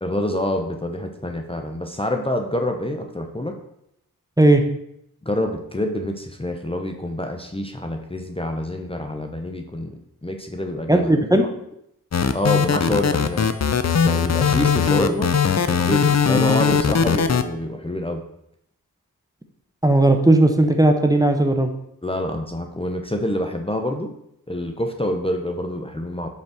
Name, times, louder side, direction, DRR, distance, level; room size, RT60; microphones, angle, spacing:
voice 1, 0.0-3.6 5.2-11.1 12.3-13.5 14.0-15.3 15.7-18.2 22.0-24.1 24.5-26.3, left 1 dB, 15° left, 4 dB, 0.8 m, -26 dB
voice 2, 10.9-11.4 19.8-21.7, right 1 dB, 10° right, 5 dB, 0.9 m, -16 dB
sound 1, 12.1-17.4, left 6 dB, 45° left, 0.6 m, -19 dB
5.4 x 5.1 x 6.1 m, 0.76 s
cardioid pair, 45°, 36 cm